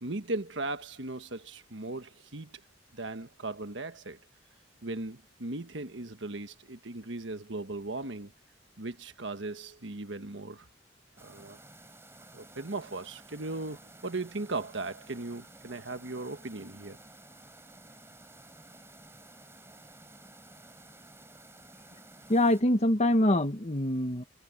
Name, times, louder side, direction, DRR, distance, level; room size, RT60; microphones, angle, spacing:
voice 1, 0.0-2.6 2.9-4.2 4.8-8.3 8.8-10.7 11.2-11.6 12.3-17.0, right 2 dB, 70° right, 1.5 m, -37 dB
sound 1, 11.2-22.6, right 2 dB, 15° right, 7.6 m, -53 dB
voice 2, 22.3-24.2, left 1 dB, 35° left, 1.5 m, -24 dB
head